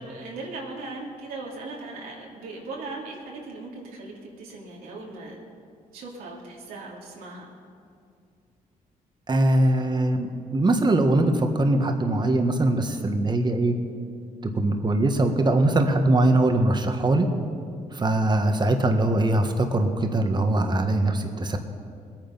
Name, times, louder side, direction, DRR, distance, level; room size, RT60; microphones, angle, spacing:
voice 1, 0.0-5.4 5.9-7.5, right 3 dB, 90° right, -3 dB, 2.7 m, -38 dB
voice 2, 9.3-13.8 14.5-17.3 17.9-21.6, right 2 dB, 30° right, 5 dB, 1.4 m, -22 dB
20.0 x 9.2 x 5.6 m, 2.3 s
cardioid pair, 85°, 15 cm